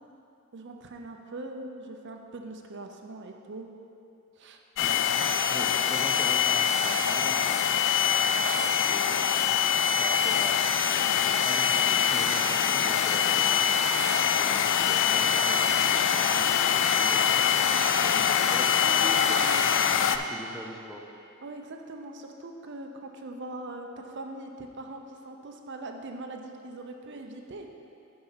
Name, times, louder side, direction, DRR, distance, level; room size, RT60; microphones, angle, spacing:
voice 1, 0.5-3.7 4.4-4.6 16.8-16.9 18.8-19.7 21.4-27.7, right 2 dB, 60° right, 3 dB, 0.6 m, -41 dB
sound 1, 4.8-20.2, left 7 dB, 60° left, 0.3 m, -24 dB
voice 2, 4.8-7.9 8.5-9.5 9.9-13.6 14.3-18.7 19.1-19.4 19.6-21.1, equal, ahead, 0 dB, 0.5 m, -43 dB
6.8 x 5.6 x 5.7 m, 2.6 s
head